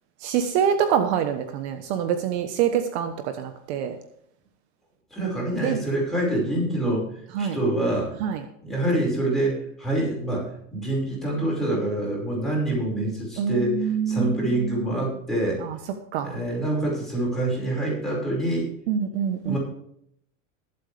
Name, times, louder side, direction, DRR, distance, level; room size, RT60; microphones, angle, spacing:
voice 1, 0.2-4.0 5.6-5.8 7.3-7.6 8.2-8.4 13.4-15.1 15.6-15.8 16.1-16.3 18.9-19.6, right 8 dB, 55° right, 7 dB, 1.2 m, -26 dB
voice 2, 5.1-7.1 7.4-8.1 8.6-15.6 16.2-18.7 19.4-19.6, right 1 dB, ahead, -5 dB, 5.3 m, -26 dB
21.0 x 7.9 x 3.4 m, 0.71 s
supercardioid pair, 155°, 40 cm